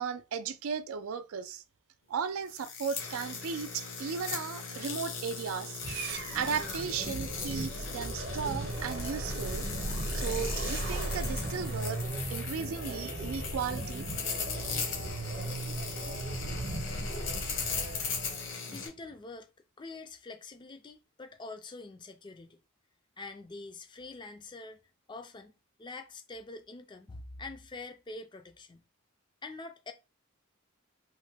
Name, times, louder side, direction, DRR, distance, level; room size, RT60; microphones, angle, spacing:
voice 1, 0.0-1.6 2.1-5.8 6.3-9.7 10.1-12.0 12.3-14.1, right 6 dB, 80° right, 0.4 m, -36 dB
sound 1, 2.5-18.9, left 5 dB, 65° left, 1.0 m, -39 dB
sound 2, 5.8-18.5, right 2 dB, 50° right, 0.8 m, -37 dB
voice 2, 18.7-19.5 19.8-22.6 23.2-24.8 25.1-25.5 25.8-28.8 29.4-29.9, left 3 dB, 20° left, 0.3 m, -45 dB
3.1 x 2.1 x 3.2 m
head